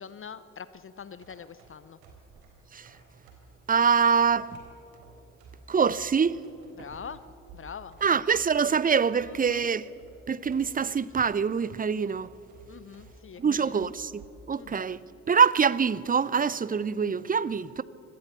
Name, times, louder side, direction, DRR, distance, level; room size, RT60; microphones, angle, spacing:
voice 1, 0.0-2.0 6.7-7.2 7.5-8.0 9.2-9.7 12.7-13.9 14.6-14.9, left 7 dB, 35° left, 0.8 m, -44 dB
sound 1, 1.0-14.4, right 4 dB, 65° right, 3.9 m, -55 dB
voice 2, 3.7-4.6 5.7-6.4 8.0-9.9 10.3-12.3 13.4-14.2 14.5-15.0 15.3-17.8, right 6 dB, 20° right, 0.7 m, -24 dB
24.5 x 17.0 x 6.9 m
figure-of-eight pair, 45°, 38 cm